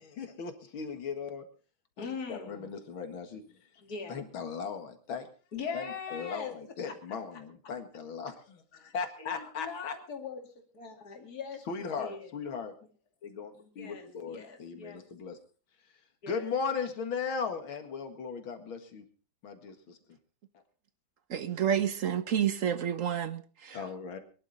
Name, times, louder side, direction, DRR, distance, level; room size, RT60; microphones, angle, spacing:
voice 1, 0.0-1.5 2.0-3.4 4.1-5.3 5.7-5.9 6.1-9.9 11.7-12.7 13.2-15.4 16.3-19.0 19.4-20.0 23.7-24.2, left 5 dB, 85° left, 2.6 m, -37 dB
voice 2, 2.0-2.7 3.8-4.2 5.5-6.5 6.8-6.9 9.2-10.4 10.7-12.3 13.5-15.1 16.2-16.5, left 5 dB, 50° left, 2.9 m, -41 dB
voice 3, 21.3-23.8, right 9 dB, 55° right, 0.9 m, -29 dB
22.5 x 11.0 x 4.1 m
omnidirectional pair, 2.2 m